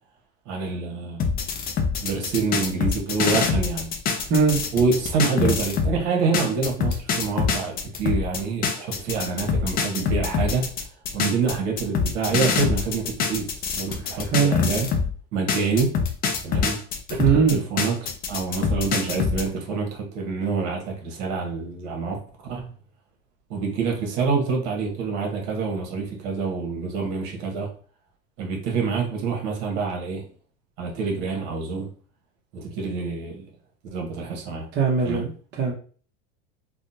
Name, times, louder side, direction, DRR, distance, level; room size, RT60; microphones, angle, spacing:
voice 1, 0.5-1.3 2.0-3.9 4.7-10.7 11.1-14.9 15.3-15.9 16.4-16.8 17.1-22.7 23.5-27.7 28.4-30.3 30.8-31.9 32.5-33.4 33.9-34.7 35.0-35.2, right 4 dB, 60° right, 1 dB, 1.2 m, -27 dB
sound 1, 1.2-6.0 6.3-15.1 15.5-19.4, left 5 dB, 25° left, 0.4 m, -25 dB
voice 2, 17.2-17.6 34.7-35.3 35.6-35.7, right 6 dB, 30° right, -3 dB, 0.8 m, -19 dB
3.6 x 2.2 x 2.6 m, 0.42 s
supercardioid pair, 125°, 36 cm